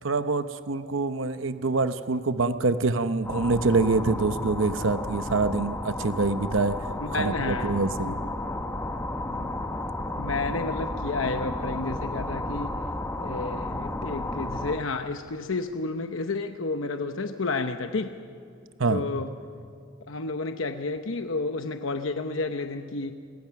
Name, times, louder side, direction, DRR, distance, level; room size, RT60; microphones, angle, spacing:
voice 1, 0.0-6.8 7.2-8.1 18.8-19.0, right 3 dB, 80° right, 10 dB, 0.9 m, -25 dB
sound 1, 3.2-14.8, left 1 dB, 15° left, 1.0 m, -33 dB
voice 2, 7.0-8.1 9.3-9.5 10.2-12.8 13.2-18.2 18.9-19.3 20.1-23.1, left 3 dB, 90° left, 7 dB, 0.9 m, -31 dB
28.5 x 22.5 x 5.9 m, 2.3 s
head